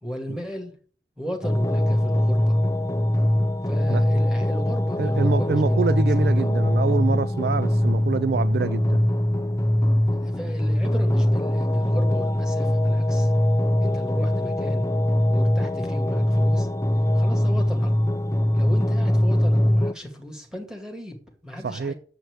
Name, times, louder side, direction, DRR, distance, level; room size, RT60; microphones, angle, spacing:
voice 1, 0.0-0.8 1.2-2.7 3.6-5.9 6.2-6.5 10.1-13.3 13.8-14.9 15.3-16.7 17.1-17.9 18.5-21.9, equal, 5° right, 2.1 m, -35 dB
sound 1, 1.4-19.9, left 1 dB, 15° left, 0.5 m, -22 dB
voice 2, 5.0-9.0 21.6-21.9, right 5 dB, 60° right, 0.3 m, -26 dB
7.7 x 6.1 x 8.0 m
head